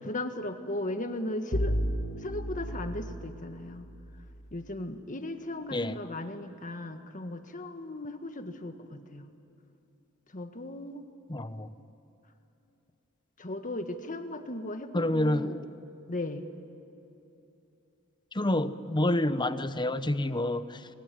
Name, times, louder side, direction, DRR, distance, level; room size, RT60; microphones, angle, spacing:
voice 1, 0.1-1.7 2.2-3.9 4.5-9.3 10.3-11.0 13.4-15.7 16.1-16.5, left 1 dB, 40° left, 1.7 m, -37 dB
Bowed string instrument, 1.5-4.6, equal, 65° left, 1.8 m, -33 dB
voice 2, 11.3-11.7 14.9-15.5 18.3-20.9, left 1 dB, 20° left, 0.9 m, -28 dB
26.5 x 21.5 x 9.4 m
head